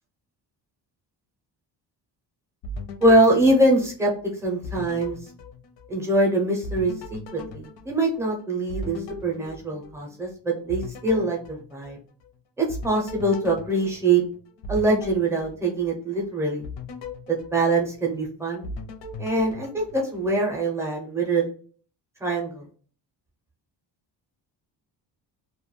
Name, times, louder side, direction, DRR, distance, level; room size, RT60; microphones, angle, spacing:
sound 1, 2.6-4.2 4.6-6.2 6.6-10.3 10.7-12.3 12.7-16.2 16.6-18.2 18.6-20.6, left 2 dB, 90° left, 0.6 m, -38 dB
voice 1, 3.0-4.1 4.4-5.2 5.9-12.0 12.6-14.2 14.7-16.6 17.3-18.7 19.2-21.5 22.2-22.6, right 2 dB, 5° right, -1 dB, 0.4 m, -23 dB
2.3 x 2.1 x 3.0 m, 0.44 s
cardioid pair, 180°, 43 cm